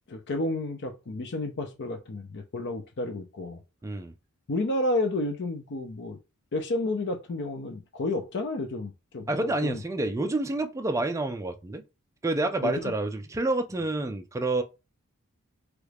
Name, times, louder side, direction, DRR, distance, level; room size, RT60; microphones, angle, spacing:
voice 1, 0.1-3.6 4.5-6.2 6.5-9.8 12.6-12.9, left 2 dB, 55° left, 0.6 m, -31 dB
voice 2, 3.8-4.1 9.3-11.8 12.2-14.6, right 2 dB, 15° right, 0.3 m, -28 dB
3.1 x 2.3 x 3.3 m
head